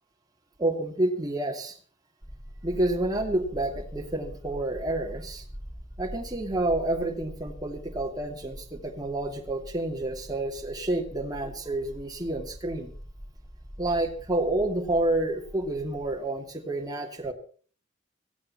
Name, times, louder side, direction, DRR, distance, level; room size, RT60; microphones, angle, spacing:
voice 1, 0.6-1.7 2.6-5.4 6.0-12.9 13.8-17.3, right 1 dB, 20° right, 2 dB, 2.6 m, -29 dB
sound 1, 2.2-16.2, equal, ahead, 3.2 m, -44 dB
17.5 x 16.0 x 4.3 m, 0.41 s
head